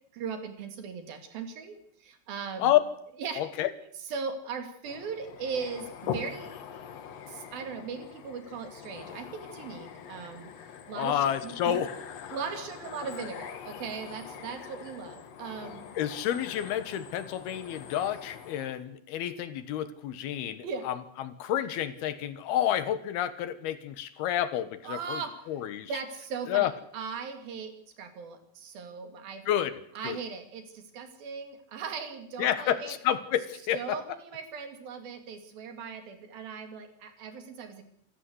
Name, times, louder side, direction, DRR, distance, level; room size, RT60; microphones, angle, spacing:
voice 1, 0.1-2.8 3.2-3.4 4.1-6.5 7.3-10.5 10.9-11.8 12.3-15.8 20.6-20.9 24.8-25.6 25.9-27.7 28.0-29.5 30.0-33.0 33.7-37.8, right 5 dB, 65° right, 7 dB, 4.1 m, -38 dB
voice 2, 3.4-3.7 10.9-11.9 16.0-20.9 21.2-25.2 25.5-25.9 26.5-26.7 29.5-29.7 30.0-30.2 32.4-34.0, left 11 dB, 75° left, 13 dB, 3.2 m, -29 dB
sound 1, 4.9-18.8, left 8 dB, 55° left, 2.1 m, -43 dB
27.0 x 14.5 x 8.0 m, 0.67 s
omnidirectional pair, 4.7 m